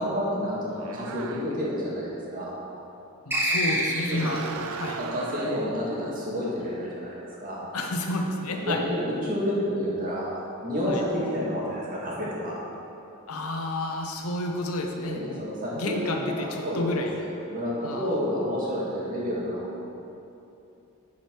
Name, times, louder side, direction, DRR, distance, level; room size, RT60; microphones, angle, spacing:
voice 1, 0.0-2.6 4.1-4.2 5.0-7.6 8.5-12.6 15.0-16.0 16.3-19.6, equal, 40° right, -6 dB, 2.0 m, -30 dB
sound 1, 0.8-1.8 4.0-5.7, right 5 dB, 70° right, 0.4 m, -37 dB
voice 2, 3.3-5.0 7.7-8.8 10.9-11.0 13.3-15.4 15.8-17.1 17.8-18.1, left 1 dB, 90° left, 2 dB, 0.9 m, -30 dB
sound 2, 3.3-4.5, equal, 10° right, 0.9 m, -26 dB
11.0 x 4.9 x 4.7 m, 2.8 s
head